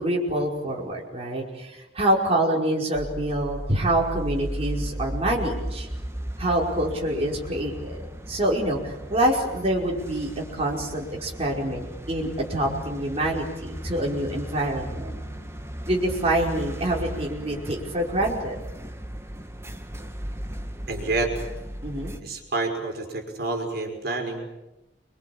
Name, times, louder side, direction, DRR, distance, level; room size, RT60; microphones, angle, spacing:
voice 1, 0.0-5.9 6.4-8.0 8.3-15.2 15.9-18.5 21.8-22.1, right 1 dB, 35° right, -1 dB, 5.2 m, -26 dB
sound 1, 2.9-22.2, equal, 15° right, 2.2 m, -36 dB
voice 2, 20.9-21.3 22.2-24.5, right 3 dB, 65° right, 4 dB, 5.6 m, -28 dB
29.0 x 23.5 x 8.7 m, 0.99 s
head